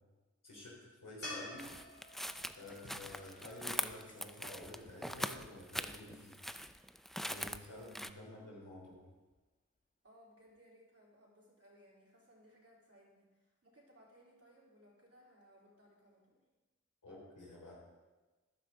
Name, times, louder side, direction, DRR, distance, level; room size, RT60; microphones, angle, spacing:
voice 1, 0.4-1.7 2.5-6.4 7.2-9.0 17.0-17.8, left 1 dB, 85° left, -3 dB, 3.7 m, -51 dB
sound 1, 1.2-4.5 7.7-7.8, left 1 dB, 45° left, 3.6 m, -50 dB
sound 2, 1.6-8.1, equal, ahead, 0.5 m, -42 dB
voice 2, 2.6-2.9 7.7-8.3 10.0-16.4, equal, 50° right, -4 dB, 3.8 m, -64 dB
Water / Splash splatter, 2.7-5.1 8.3-8.4 8.7-9.5 10.6-10.7, left 2 dB, 25° left, 1.3 m, -62 dB
13.5 x 10.0 x 3.8 m, 1.2 s
cardioid pair, 45°, 31 cm